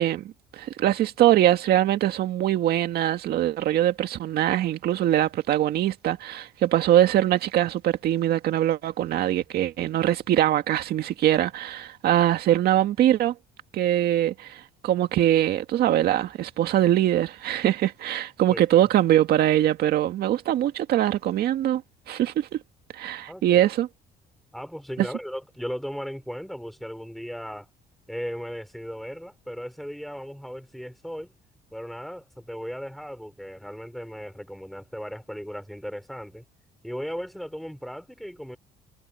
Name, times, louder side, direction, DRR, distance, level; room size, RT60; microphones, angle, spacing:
voice 1, 0.0-13.3 13.7-21.8 22.1-22.6 22.9-23.9 25.0-25.1, right 12 dB, 70° right, 2.0 m, -22 dB
voice 2, 18.5-18.8 23.3-23.7 24.5-27.7 28.1-31.3 31.7-36.4 36.8-38.6, equal, ahead, 6.0 m, -36 dB
cardioid pair, 110°, 17 cm